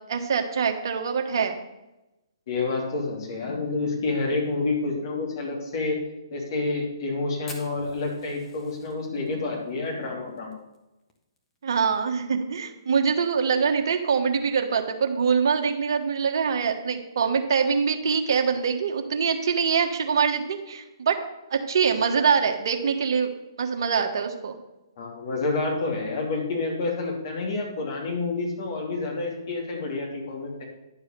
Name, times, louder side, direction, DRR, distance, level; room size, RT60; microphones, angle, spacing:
voice 1, 0.1-1.6 11.6-21.1 21.5-23.3 23.6-24.5, right 6 dB, 55° right, 5 dB, 1.2 m, -24 dB
voice 2, 2.5-6.0 6.3-10.6 25.0-30.6, left 3 dB, 50° left, 0 dB, 3.0 m, -28 dB
Fire, 7.5-12.0 12.2-12.3 12.6-12.7 13.1-13.5 14.0-14.1 15.1-15.3, left 3 dB, 15° left, 1.2 m, -47 dB
10.5 x 4.7 x 6.7 m, 0.97 s
figure-of-eight pair, 130°, 3 cm